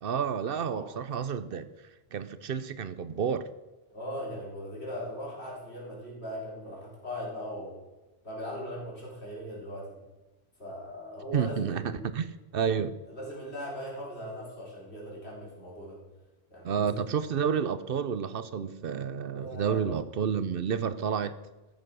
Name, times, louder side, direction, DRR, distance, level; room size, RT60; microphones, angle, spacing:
voice 1, 0.0-1.7 2.1-3.5 11.3-13.0 16.6-21.4, right 7 dB, 65° right, 0.9 m, -30 dB
voice 2, 3.9-7.8 8.2-9.9 10.6-12.1 13.1-16.0 16.5-17.0 19.3-19.9, equal, 85° left, 4.7 m, -39 dB
14.0 x 7.3 x 6.3 m
omnidirectional pair, 1.1 m